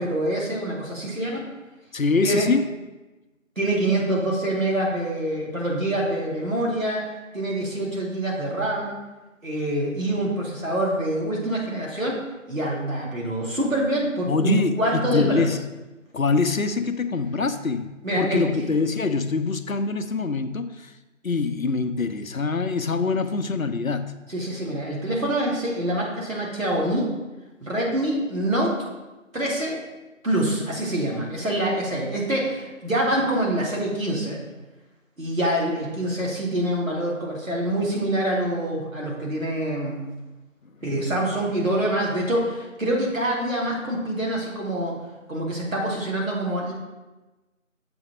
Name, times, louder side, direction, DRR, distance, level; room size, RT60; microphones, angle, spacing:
voice 1, 0.0-1.5 2.2-2.5 3.6-7.0 7.3-9.0 9.4-12.2 12.5-15.4 18.0-18.4 24.3-27.1 27.6-28.7 29.3-29.8 30.2-34.4 35.2-40.0 40.8-44.9 45.3-46.7, right 1 dB, 80° right, -4 dB, 2.5 m, -25 dB
voice 2, 1.9-2.6 14.3-15.6 16.1-20.9 21.2-24.1, left 4 dB, 90° left, 10 dB, 0.7 m, -24 dB
7.1 x 3.5 x 6.1 m, 1.1 s
figure-of-eight pair, 170°, 40 cm